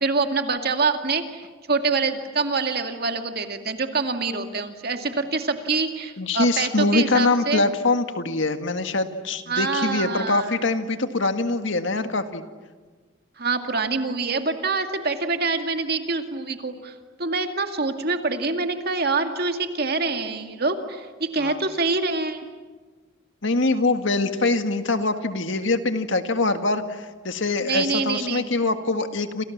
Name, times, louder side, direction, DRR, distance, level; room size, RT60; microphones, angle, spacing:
voice 1, 0.0-7.6 9.5-10.5 13.4-16.9 17.2-22.4 27.6-28.5, right 4 dB, 50° right, 6 dB, 2.3 m, -25 dB
voice 2, 6.2-12.4 21.4-21.6 23.4-29.4, left 3 dB, 65° left, 8 dB, 1.8 m, -23 dB
28.5 x 28.0 x 7.3 m, 1.4 s
head